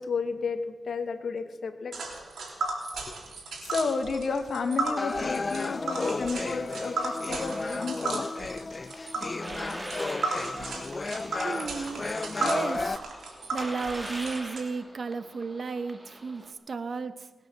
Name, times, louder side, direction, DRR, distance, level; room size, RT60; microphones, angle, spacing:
voice 1, 0.0-2.0 3.1-3.2 3.6-8.3, left 4 dB, 70° left, 1.4 m, -32 dB
Tick, 1.9-14.6, right 3 dB, 80° right, 3.4 m, -35 dB
sound 1, 5.0-13.0, left 3 dB, 40° left, 0.5 m, -33 dB
sound 2, 8.7-16.5, right 1 dB, 10° right, 2.0 m, -43 dB
voice 2, 11.4-13.1 13.5-17.3, right 4 dB, 55° right, 1.0 m, -34 dB
19.5 x 9.0 x 7.3 m
cardioid pair, 70°, 0 cm